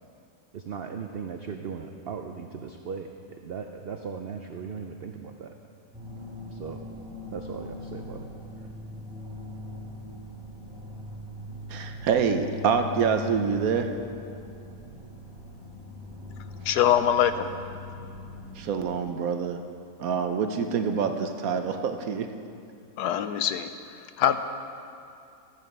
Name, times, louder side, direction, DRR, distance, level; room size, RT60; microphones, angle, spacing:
voice 1, 0.5-5.6 6.5-6.8 7.3-8.3 8.6-8.7, right 6 dB, 85° right, 5 dB, 0.5 m, -38 dB
sound 1, 5.9-18.6, left 2 dB, ahead, 2.7 m, -41 dB
voice 2, 11.7-13.9 18.5-19.6 20.0-22.3, right 6 dB, 65° right, 6 dB, 1.1 m, -26 dB
voice 3, 16.6-17.5 23.0-23.7 24.2-24.4, left 10 dB, 80° left, 10 dB, 1.2 m, -23 dB
13.0 x 9.1 x 5.3 m, 2.5 s
omnidirectional pair, 1.7 m